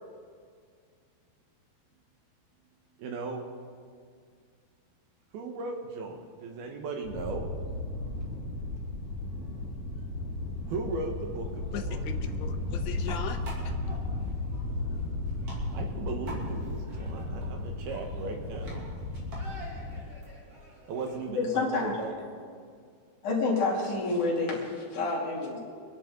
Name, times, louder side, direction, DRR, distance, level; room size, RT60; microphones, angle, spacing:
voice 1, 3.0-3.4 5.3-7.5 10.7-12.0 15.7-18.9 20.9-22.1, right 3 dB, 70° right, 3.1 m, -37 dB
sound 1, 7.0-20.0, left 2 dB, 20° left, 2.2 m, -34 dB
sound 2, 10.5-22.1, right 1 dB, 40° right, 3.4 m, -49 dB
voice 2, 11.7-14.3, left 8 dB, 85° left, 3.0 m, -40 dB
voice 3, 21.3-22.0 23.2-25.6, left 3 dB, 50° left, 3.9 m, -28 dB
25.5 x 10.5 x 3.9 m
omnidirectional pair, 4.8 m